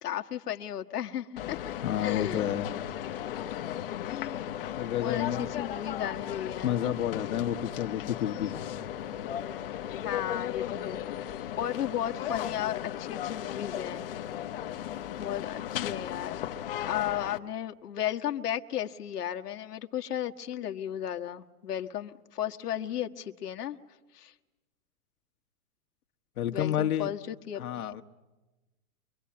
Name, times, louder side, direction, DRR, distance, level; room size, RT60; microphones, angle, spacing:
voice 1, 0.0-2.5 4.1-4.5 5.0-6.8 7.2-7.6 10.0-14.0 15.2-16.4 16.8-23.8 24.1-24.3 26.5-27.9, left 11 dB, 90° left, 5 dB, 1.6 m, -35 dB
sound 1, 1.4-17.4, left 11 dB, 40° left, 1.1 m, -36 dB
voice 2, 1.8-2.7 4.8-5.5 6.6-8.7 14.3-14.6 26.4-27.1 27.6-28.0, left 10 dB, 70° left, 6 dB, 1.7 m, -30 dB
24.5 x 24.0 x 8.7 m, 1.1 s
hypercardioid pair, 175°, 45 cm